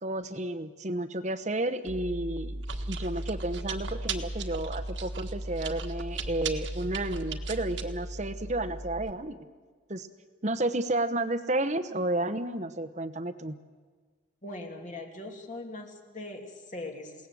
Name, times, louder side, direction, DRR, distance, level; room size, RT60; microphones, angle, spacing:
voice 1, 0.0-2.6 2.9-9.5 9.9-10.1 10.4-13.6, right 1 dB, 35° right, 11 dB, 1.1 m, -31 dB
Chewing mastication, 1.9-9.1, right 2 dB, 65° right, 1.6 m, -36 dB
voice 2, 14.4-17.3, left 2 dB, 40° left, 2 dB, 2.7 m, -41 dB
28.0 x 18.5 x 7.7 m, 1.5 s
head